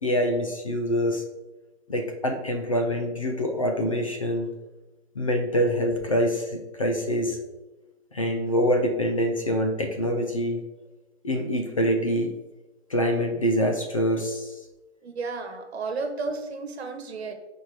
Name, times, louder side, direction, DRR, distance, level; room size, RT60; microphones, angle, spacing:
voice 1, 0.0-1.2 1.9-4.5 5.2-7.4 8.1-10.6 11.2-12.3 12.9-14.5, equal, 30° left, 3 dB, 0.5 m, -25 dB
voice 2, 15.0-17.3, right 4 dB, 60° right, 6 dB, 1.3 m, -32 dB
6.0 x 4.4 x 4.8 m, 1.1 s
hypercardioid pair, 170°, 35 cm